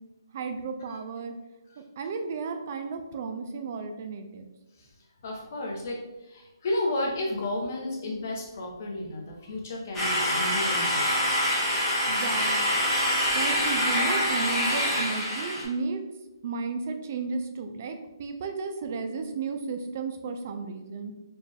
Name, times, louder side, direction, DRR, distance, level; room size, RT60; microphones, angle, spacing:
voice 1, 0.3-1.3 1.8-4.5 12.1-12.6 13.3-16.0 16.4-21.1, right 4 dB, 30° right, 7 dB, 0.3 m, -33 dB
voice 2, 5.2-11.2, left 1 dB, 40° left, -1 dB, 0.8 m, -32 dB
sound 1, 9.9-15.6, equal, 10° left, 0.8 m, -25 dB
4.3 x 2.3 x 3.3 m, 1.0 s
hypercardioid pair, 170°, 2 cm